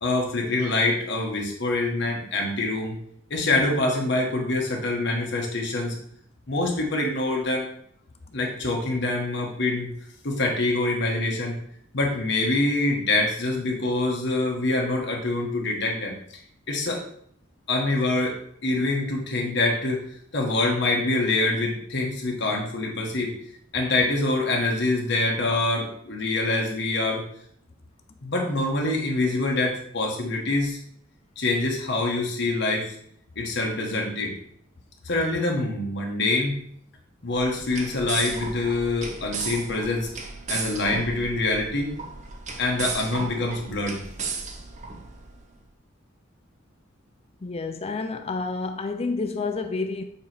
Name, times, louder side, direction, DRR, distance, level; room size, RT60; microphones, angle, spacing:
voice 1, 0.0-2.9 3.3-5.9 6.5-7.7 8.3-9.9 10.2-11.6 11.9-16.1 16.7-17.0 17.7-20.0 20.3-23.3 23.7-27.2 28.2-30.8 31.4-32.9 33.3-34.4 35.0-36.6 37.2-40.1 40.5-41.9 42.6-44.0, left 2 dB, 65° left, 1.4 m, -25 dB
sound 1, 37.3-45.4, right 4 dB, 40° right, 0.7 m, -35 dB
voice 2, 47.4-50.0, left 3 dB, 30° left, 0.4 m, -29 dB
7.3 x 3.0 x 4.3 m
head